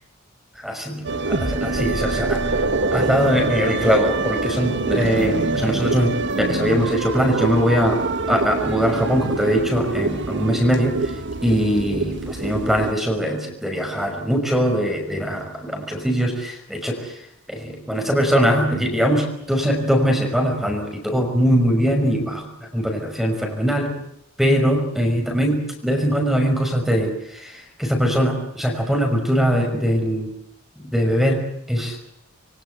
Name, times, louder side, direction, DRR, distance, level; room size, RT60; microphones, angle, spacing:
voice 1, 0.6-2.6 2.9-8.0 8.3-11.0 11.4-17.0 17.5-24.0 24.4-30.3 30.9-31.4 31.7-32.0, equal, ahead, 3 dB, 5.8 m, -21 dB
sound 1, 1.0-12.9, right 3 dB, 60° right, 1.6 m, -25 dB
27.0 x 24.0 x 8.1 m, 0.76 s
head